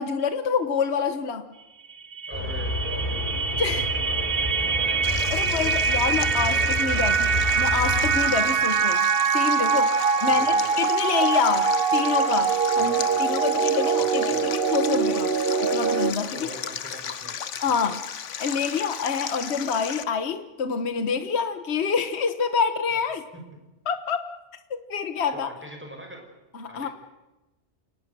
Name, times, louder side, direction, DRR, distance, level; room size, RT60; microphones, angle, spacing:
voice 1, 0.0-1.5 3.6-3.9 5.3-15.3 15.6-16.5 17.6-18.0 18.4-23.2 23.9-24.4 24.7-25.5 26.5-26.9, left 6 dB, 65° left, 9 dB, 1.4 m, -27 dB
sound 1, 1.9-16.1, right 6 dB, 55° right, 1.1 m, -24 dB
sound 2, 2.3-8.3, left 2 dB, 35° left, 4.8 m, -30 dB
voice 2, 2.3-7.2 8.6-8.8 10.3-10.7 12.8-13.1 14.2-14.5 16.3-17.4 17.7-17.9 25.3-26.3 26.6-26.9, right 1 dB, 10° right, 3 dB, 5.0 m, -42 dB
Stream, 5.0-20.0, left 8 dB, 85° left, 1.3 m, -35 dB
29.0 x 19.5 x 6.7 m, 1.1 s
omnidirectional pair, 1.2 m